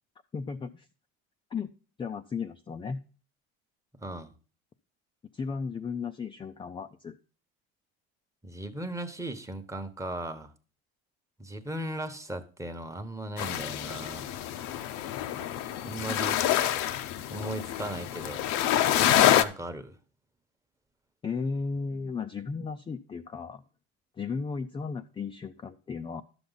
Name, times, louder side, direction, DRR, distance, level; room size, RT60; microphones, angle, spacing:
voice 1, 0.3-0.9 1.5-1.7 2.0-3.0 5.3-7.1 21.2-23.6 24.2-26.2, left 5 dB, 15° left, 0.4 m, -35 dB
voice 2, 4.0-4.3 8.4-10.5 11.4-14.3 15.8-16.4 17.3-18.6 19.1-20.0, right 1 dB, 10° right, 1.0 m, -37 dB
sound 1, 13.4-19.4, left 12 dB, 65° left, 0.7 m, -27 dB
11.5 x 7.0 x 3.9 m
supercardioid pair, 105°, 30 cm